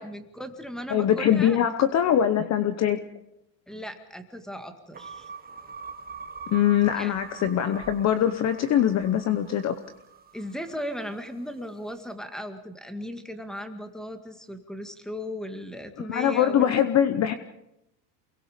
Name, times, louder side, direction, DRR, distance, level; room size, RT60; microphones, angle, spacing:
voice 1, 0.0-1.6 3.7-5.3 6.9-7.1 10.3-16.8, equal, ahead, 6 dB, 2.0 m, -37 dB
voice 2, 0.9-3.0 6.5-9.8 16.1-17.3, left 10 dB, 35° left, 11 dB, 0.9 m, -22 dB
sound 1, 4.9-11.3, right 6 dB, 20° right, 1.5 m, -43 dB
28.5 x 22.0 x 5.1 m, 0.86 s
cardioid pair, 140°, 48 cm